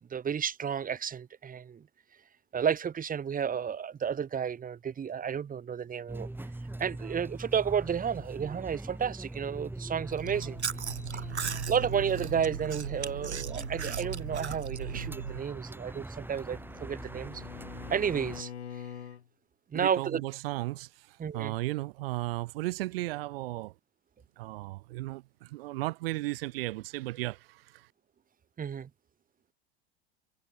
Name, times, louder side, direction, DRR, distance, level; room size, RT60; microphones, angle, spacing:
voice 1, 0.1-1.9 2.5-6.3 6.8-10.6 11.1-11.2 11.7-17.4 17.9-18.5 19.7-20.2 21.2-21.5 28.6-28.9, right 7 dB, 25° right, 4.2 m, -32 dB
sound 1, 6.1-18.4, right 2 dB, 5° right, 7.5 m, -42 dB
Chewing mastication, 10.1-15.4, right 7 dB, 85° right, 1.4 m, -37 dB
Bowed string instrument, 16.1-19.3, left 8 dB, 75° left, 5.2 m, -45 dB
voice 2, 19.7-23.7 24.4-27.9, right 19 dB, 60° right, 3.2 m, -35 dB
figure-of-eight pair, 80°, 33 cm